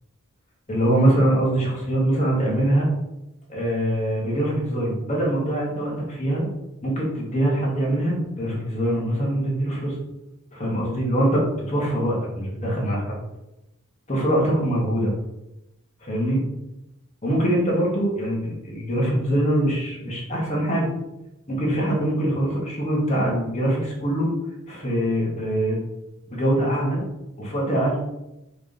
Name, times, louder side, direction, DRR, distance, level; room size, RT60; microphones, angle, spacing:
voice 1, 0.7-2.9 3.5-6.4 6.8-9.9 10.5-13.2 14.1-15.1 16.0-16.4 17.2-20.9 21.5-24.3 24.7-25.8 26.3-27.0 27.4-28.0, right 1 dB, 30° left, -4 dB, 2.1 m, -23 dB
5.2 x 3.7 x 5.4 m, 0.91 s
head